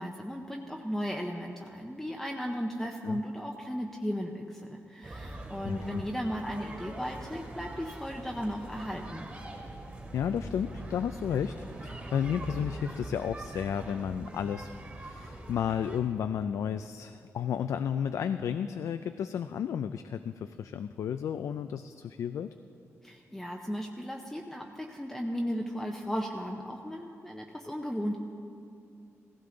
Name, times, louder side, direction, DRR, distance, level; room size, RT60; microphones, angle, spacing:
voice 1, 0.0-9.3 23.0-28.2, equal, 5° left, 1 dB, 0.6 m, -36 dB
sound 1, 5.0-16.0, right 1 dB, 25° right, 2.4 m, -43 dB
voice 2, 5.6-6.0 10.1-22.5, left 8 dB, 85° left, 9 dB, 0.3 m, -33 dB
16.5 x 16.0 x 3.8 m, 2.5 s
wide cardioid pair, 145°, 5 cm